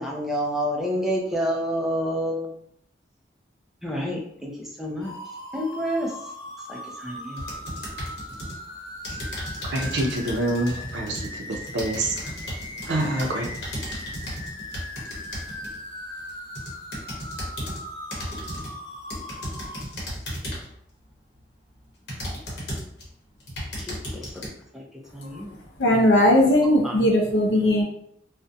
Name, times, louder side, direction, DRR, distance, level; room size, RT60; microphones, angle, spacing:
voice 1, 0.0-2.5 3.8-5.1 5.5-6.1 6.7-7.4 23.8-24.8 25.1-25.6 26.8-27.0, equal, ahead, 0.4 m, -29 dB
sound 1, 5.0-19.8, left 1 dB, 25° left, 0.7 m, -39 dB
sound 2, 7.4-8.6 9.0-15.8 16.3-17.8 18.1-18.7 19.1-20.8 21.4-21.5 22.1-23.0 23.4-24.5, equal, 65° left, 0.8 m, -35 dB
voice 2, 9.6-12.3 12.9-13.4, right 1 dB, 75° right, 0.5 m, -27 dB
voice 3, 25.8-27.8, left 1 dB, 85° left, 0.5 m, -18 dB
2.4 x 2.1 x 2.6 m
head